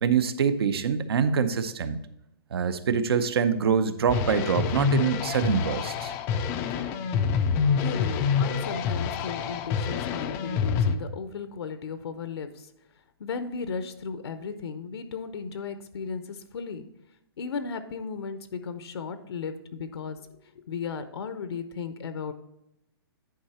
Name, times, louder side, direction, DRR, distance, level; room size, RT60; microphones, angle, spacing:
voice 1, 0.0-2.0 2.5-6.1, right 6 dB, 70° right, 11 dB, 0.8 m, -25 dB
sound 1, 4.1-11.0, left 6 dB, 15° left, 0.4 m, -27 dB
voice 2, 6.3-6.9 7.7-12.7 13.2-16.9 17.4-22.3, left 5 dB, 80° left, 10 dB, 0.7 m, -36 dB
10.5 x 4.9 x 4.2 m, 0.85 s
hypercardioid pair, 160°, 13 cm